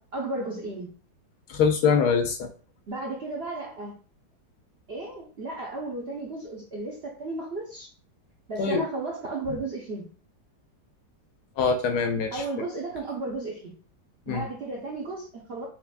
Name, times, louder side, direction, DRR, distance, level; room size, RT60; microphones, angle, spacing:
voice 1, 0.1-0.9 2.9-4.0 4.9-7.9 8.5-10.1 12.3-13.7 14.3-15.7, right 2 dB, 60° right, -2 dB, 0.6 m, -34 dB
voice 2, 1.5-2.5 8.6-8.8 11.6-12.4 14.3-14.5, left 5 dB, 70° left, 5 dB, 1.1 m, -23 dB
5.6 x 2.5 x 2.2 m, 0.38 s
omnidirectional pair, 1.9 m